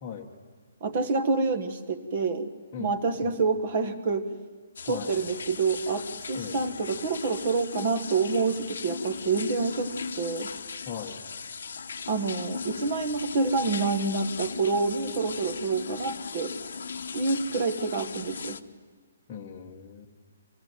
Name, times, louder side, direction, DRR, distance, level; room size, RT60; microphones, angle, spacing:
voice 1, 0.8-2.5 2.8-4.2 4.9-10.5 12.1-16.6 17.1-18.6, right 4 dB, 30° right, 11 dB, 1.5 m, -27 dB
sound 1, 4.8-18.6, left 5 dB, 60° left, 1.0 m, -38 dB
voice 2, 4.9-5.2 6.3-6.6 10.9-11.2 19.3-20.1, left 7 dB, 15° left, -5 dB, 1.2 m, -38 dB
24.5 x 18.5 x 9.3 m, 1.5 s
hypercardioid pair, 180°, 0 cm